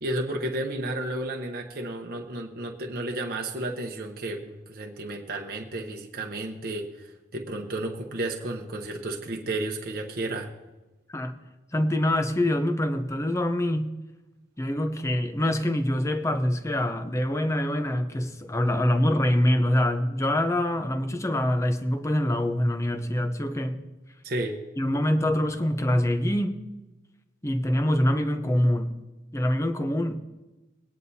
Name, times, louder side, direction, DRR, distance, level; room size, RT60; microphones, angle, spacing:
voice 1, 0.0-10.5 24.2-24.6, right 1 dB, 50° right, 0.9 m, -32 dB
voice 2, 11.7-13.9 14.6-23.8 24.8-26.5 27.4-28.9 29.3-30.2, left 1 dB, 15° left, 0.7 m, -25 dB
19.5 x 9.7 x 2.7 m
head